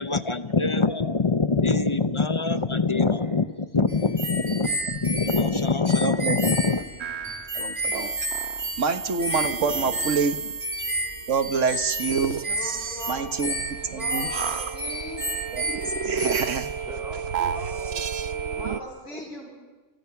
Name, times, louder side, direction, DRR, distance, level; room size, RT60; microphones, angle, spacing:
voice 1, 0.0-6.8, left 4 dB, 30° left, 0.7 m, -24 dB
voice 2, 2.4-3.7 7.2-7.4 9.7-10.1 16.8-18.1 18.7-18.8 19.1-19.2, equal, 5° right, 2.6 m, -45 dB
sound 1, 3.9-16.8, right 1 dB, 30° right, 3.2 m, -32 dB
voice 3, 6.0-6.4 6.7-6.8 7.5-8.1 8.8-10.4 11.3-12.4 13.1-14.3 15.5-15.6 16.0-16.7, right 5 dB, 75° right, 1.7 m, -27 dB
sound 2, 7.0-18.8, right 6 dB, 60° right, 1.2 m, -32 dB
voice 4, 12.4-13.3 13.9-15.3 18.5-19.5, left 1 dB, 70° left, 8.1 m, -38 dB
29.5 x 29.0 x 5.9 m
omnidirectional pair, 1.3 m